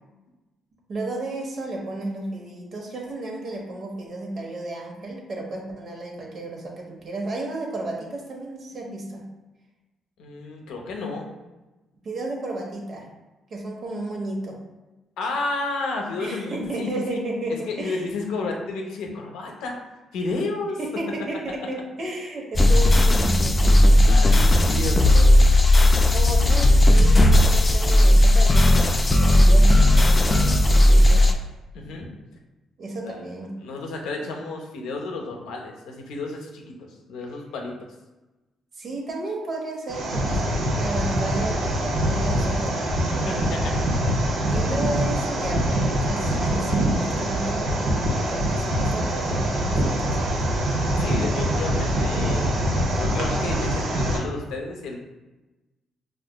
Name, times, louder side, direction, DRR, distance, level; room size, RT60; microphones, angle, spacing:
voice 1, 0.9-9.3 12.0-13.1 13.5-14.6 16.2-18.0 20.8-24.0 26.1-31.4 32.8-33.5 38.8-42.8 43.2-43.5 44.5-50.4, right 2 dB, 55° right, -1 dB, 0.8 m, -33 dB
voice 2, 10.2-11.3 15.2-17.2 17.7-19.8 20.1-20.8 24.0-25.5 31.7-32.1 33.0-33.2 33.6-37.7 43.3-43.7 44.3-44.4 51.0-55.0, left 3 dB, 90° left, 1 dB, 0.6 m, -32 dB
sound 1, 22.5-31.3, left 1 dB, 25° left, 0.3 m, -15 dB
sound 2, 39.9-54.2, right 1 dB, 85° right, 0.7 m, -24 dB
4.8 x 2.4 x 2.2 m, 1.1 s
cardioid pair, 90°, 0 cm